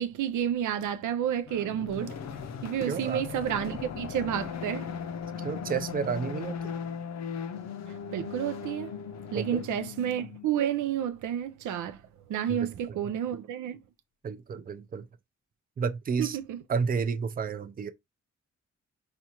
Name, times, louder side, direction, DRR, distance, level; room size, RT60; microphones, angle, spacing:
voice 1, 0.0-2.2 2.6-4.9 8.1-8.9 9.3-12.0 12.3-13.8 16.2-16.6, right 10 dB, 90° right, 0.5 m, -30 dB
sound 1, 1.5-10.7, left 6 dB, 65° left, 0.5 m, -38 dB
voice 2, 2.9-3.2 5.4-6.7 9.3-9.6 12.5-13.0 14.2-15.0 15.8-16.4 16.7-17.9, right 6 dB, 30° right, 0.5 m, -31 dB
4.2 x 2.4 x 2.8 m
cardioid pair, 80°, 29 cm